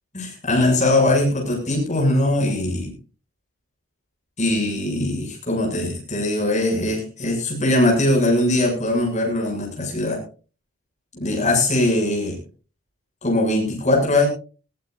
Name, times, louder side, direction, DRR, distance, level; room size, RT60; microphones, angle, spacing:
voice 1, 0.1-2.9 4.4-10.2 11.1-12.4 13.2-14.3, left 1 dB, 35° left, 0 dB, 7.2 m, -21 dB
20.5 x 16.0 x 2.6 m, 0.35 s
head